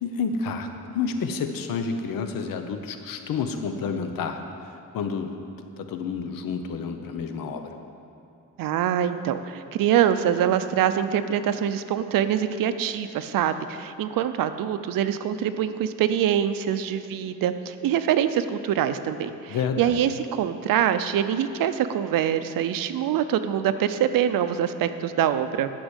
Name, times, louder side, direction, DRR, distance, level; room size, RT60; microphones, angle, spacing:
voice 1, 0.0-5.3 5.8-7.7 19.5-20.0, left 5 dB, 85° left, 6 dB, 1.0 m, -30 dB
voice 2, 8.6-25.7, right 9 dB, 85° right, 11 dB, 0.7 m, -24 dB
11.5 x 6.2 x 8.2 m, 2.6 s
cardioid pair, 135°, 33 cm